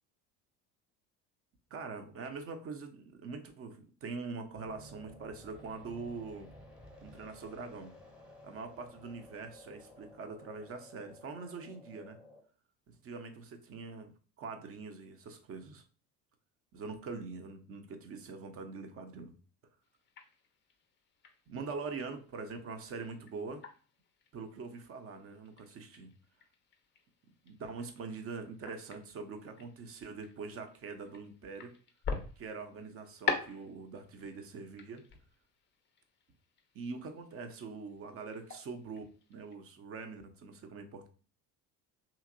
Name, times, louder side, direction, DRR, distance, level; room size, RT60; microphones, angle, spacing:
voice 1, 1.7-6.5 7.0-7.9 8.4-12.2 12.9-14.1 14.4-15.8 16.7-19.4 21.5-23.6 24.3-26.1 27.4-31.7 32.4-35.0 36.7-39.0 39.3-41.1, right 4 dB, 30° right, 7 dB, 0.5 m, -43 dB
sound 1, 4.5-12.4, left 1 dB, ahead, 0.8 m, -55 dB
sound 2, 19.8-39.6, left 5 dB, 25° left, 0.5 m, -45 dB
2.9 x 2.8 x 2.4 m, 0.38 s
figure-of-eight pair, 65°, 49 cm